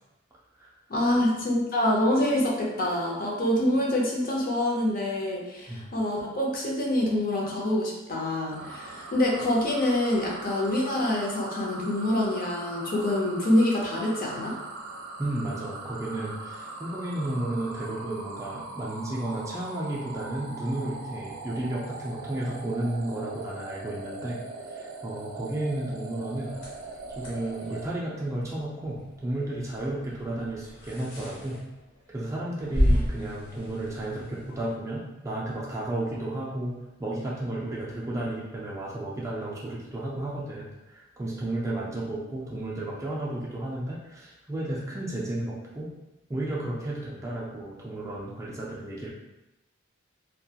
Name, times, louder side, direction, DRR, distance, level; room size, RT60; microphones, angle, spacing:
voice 1, 0.9-14.6, left 1 dB, 45° left, -3 dB, 0.6 m, -26 dB
sound 1, 8.5-27.8, right 2 dB, 90° right, 0.4 m, -41 dB
voice 2, 15.2-24.4 24.7-26.6 27.2-31.6 32.1-45.9 46.3-49.1, right 1 dB, 15° right, -5 dB, 0.4 m, -33 dB
sound 2, 26.4-34.7, equal, 70° left, 1.1 m, -33 dB
2.3 x 2.2 x 2.7 m, 0.97 s
head